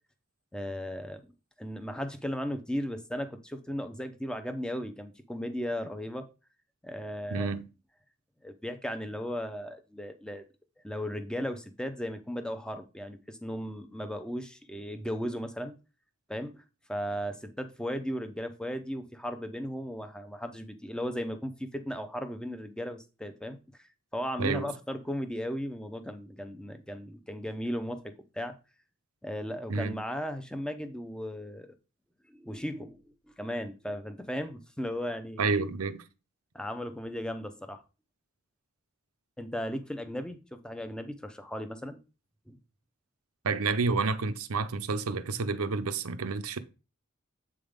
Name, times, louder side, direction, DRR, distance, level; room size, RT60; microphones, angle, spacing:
voice 1, 0.5-1.2 1.6-6.3 6.8-7.5 8.4-10.4 10.8-15.7 16.3-16.6 16.9-28.5 29.2-31.7 32.3-35.4 36.5-37.8 39.4-42.0 42.5-42.6, equal, 5° left, 0.6 m, -36 dB
voice 2, 7.3-7.6 24.4-24.7 29.7-30.0 35.4-36.0 43.4-46.6, right 4 dB, 85° right, 0.7 m, -29 dB
7.9 x 3.7 x 5.0 m
head